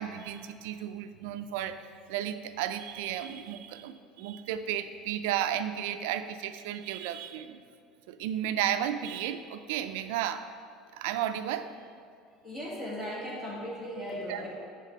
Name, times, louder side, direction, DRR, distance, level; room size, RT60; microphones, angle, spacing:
voice 1, 0.0-1.8 2.1-7.6 8.1-10.5 10.9-11.7 14.3-14.4, right 10 dB, 85° right, 10 dB, 0.4 m, -33 dB
voice 2, 12.4-14.5, equal, 15° left, -6 dB, 1.8 m, -37 dB
9.2 x 3.5 x 5.3 m, 2.3 s
cardioid pair, 155°, 0 cm